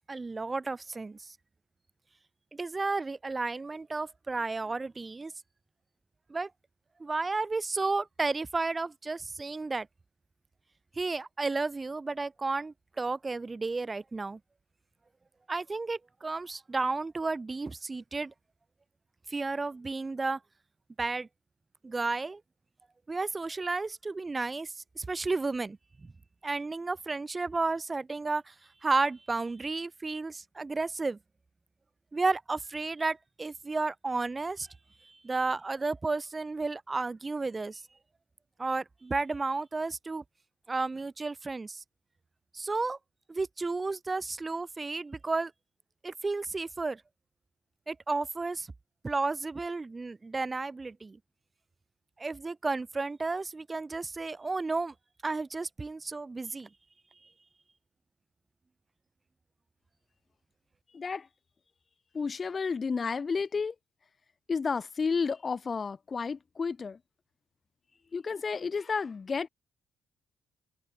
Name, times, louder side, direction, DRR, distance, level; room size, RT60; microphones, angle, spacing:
voice 1, 0.1-1.3 2.5-5.3 6.3-6.5 7.0-9.9 11.0-14.4 15.5-18.3 19.3-20.4 21.0-21.3 21.8-22.4 23.1-26.1 26.4-28.5 28.8-31.2 32.1-34.7 35.0-37.8 38.6-40.2 40.7-41.8 42.5-43.0 43.3-45.5 46.0-47.0 47.9-48.7 49.0-51.2 52.2-54.9 55.2-56.7, right 3 dB, 25° right, 0.6 m, -32 dB
voice 2, 60.9-61.3 62.1-63.8 64.5-67.0 68.1-69.5, left 5 dB, 35° left, 0.5 m, -31 dB
cardioid pair, 90°, 0 cm